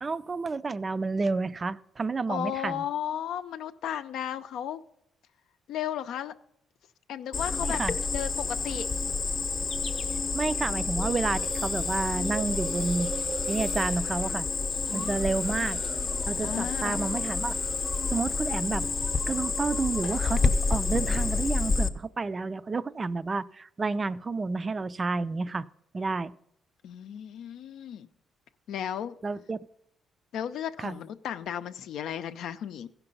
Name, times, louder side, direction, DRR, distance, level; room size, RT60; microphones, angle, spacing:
voice 1, 0.0-2.9 7.6-7.9 10.3-13.1 13.5-14.5 14.9-15.8 16.3-17.5 18.1-18.9 19.3-25.7 25.9-26.3 29.2-29.6 30.8-31.0, right 3 dB, 30° right, 16 dB, 0.4 m, -30 dB
voice 2, 2.3-4.8 5.7-6.3 7.1-7.8 8.1-8.9 14.9-15.3 16.4-17.0 26.8-28.1 28.7-29.1 30.3-32.9, left 10 dB, 80° left, 10 dB, 0.5 m, -34 dB
Cricket, 7.3-21.9, left 4 dB, 45° left, 0.8 m, -29 dB
sound 1, 11.0-18.4 18.6-20.2, right 6 dB, 70° right, 0.7 m, -43 dB
15.5 x 5.8 x 5.3 m, 0.77 s
cardioid pair, 90°, 0 cm